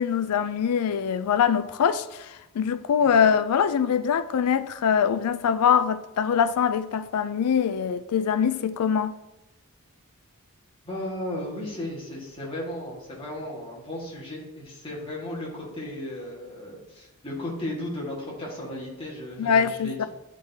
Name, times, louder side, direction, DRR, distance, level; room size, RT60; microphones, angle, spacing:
voice 1, 0.0-9.1 19.4-20.0, left 7 dB, 80° left, 0.4 m, -23 dB
voice 2, 10.8-20.1, left 1 dB, 25° left, 1.7 m, -35 dB
9.4 x 3.8 x 2.8 m
head